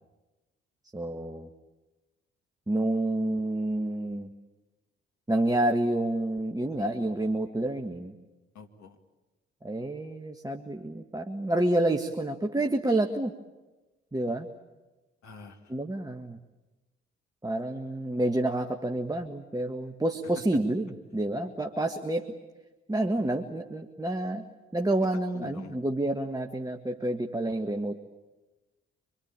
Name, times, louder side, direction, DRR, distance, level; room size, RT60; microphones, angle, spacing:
voice 1, 0.9-1.5 2.7-4.3 5.3-8.1 9.6-13.3 14.1-14.5 15.7-16.4 17.4-22.3 22.9-24.5 24.7-28.0, right 1 dB, 10° right, 4 dB, 1.7 m, -29 dB
voice 2, 8.5-9.0 15.2-15.7 25.1-25.8, left 5 dB, 60° left, 4 dB, 2.4 m, -46 dB
26.0 x 22.5 x 8.9 m, 1.1 s
hypercardioid pair, 40°, 31 cm